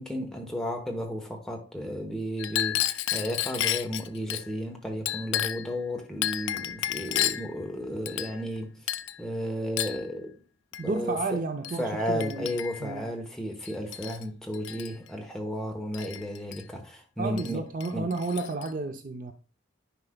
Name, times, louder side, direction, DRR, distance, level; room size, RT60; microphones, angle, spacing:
voice 1, 0.0-8.7 9.2-10.3 10.8-11.4 11.8-17.6 17.9-18.1, equal, 5° left, 0.9 m, -33 dB
Chink clink, 2.4-4.4 5.1-5.7 6.2-7.5 8.1-8.6 8.9-9.2 9.8-10.0 10.7-10.9 11.6-11.8 12.2-12.9 13.6-14.2 14.5-14.9 15.9-16.6 17.4-17.5 17.8-18.7, left 13 dB, 60° left, 0.3 m, -31 dB
voice 2, 10.8-12.5 12.8-13.1 17.2-19.3, right 3 dB, 40° right, 0.5 m, -32 dB
9.8 x 4.8 x 2.2 m
head